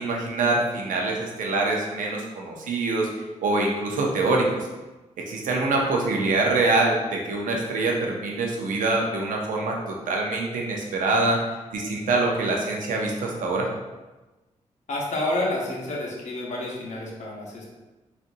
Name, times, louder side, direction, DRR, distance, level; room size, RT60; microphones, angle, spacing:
voice 1, 0.0-3.1 3.4-4.7 5.3-11.4 11.7-13.7, right 2 dB, 90° right, 0 dB, 0.6 m, -24 dB
voice 2, 14.9-17.7, left 1 dB, 65° left, -3 dB, 0.9 m, -29 dB
4.0 x 2.5 x 2.5 m, 1.1 s
cardioid pair, 70°, 13 cm